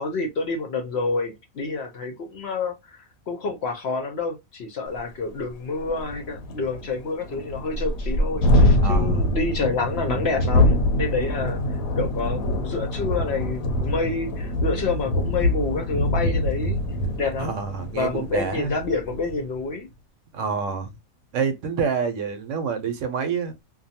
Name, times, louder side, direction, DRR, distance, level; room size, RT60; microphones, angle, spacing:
voice 1, 0.0-11.6 12.0-16.8 17.2-17.5 17.9-19.9, left 3 dB, 60° left, 0.7 m, -28 dB
Thunderstorm, 5.0-5.1 5.4-5.5 5.8-19.4, left 1 dB, 85° left, 1.0 m, -24 dB
voice 2, 8.8-9.3 17.4-18.7 20.3-20.9 21.3-23.6, right 6 dB, 70° right, 0.9 m, -27 dB
2.6 x 2.2 x 2.7 m
omnidirectional pair, 1.4 m